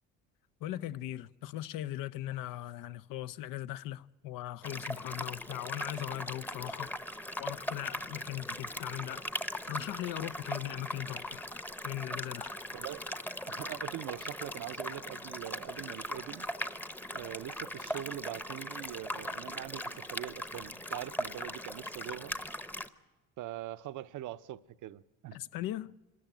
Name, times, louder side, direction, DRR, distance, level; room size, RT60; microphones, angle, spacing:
voice 1, 0.6-6.9 7.4-9.2 9.7-11.4 11.8-12.5 25.3-25.9, left 13 dB, 75° left, 0.6 m, -39 dB
sound 1, 4.6-22.9, equal, 5° left, 0.8 m, -40 dB
voice 2, 12.7-13.0 13.5-16.5 17.1-22.3 23.4-25.4, right 13 dB, 60° right, 0.7 m, -42 dB
25.5 x 14.0 x 9.1 m
cardioid pair, 105°, 33 cm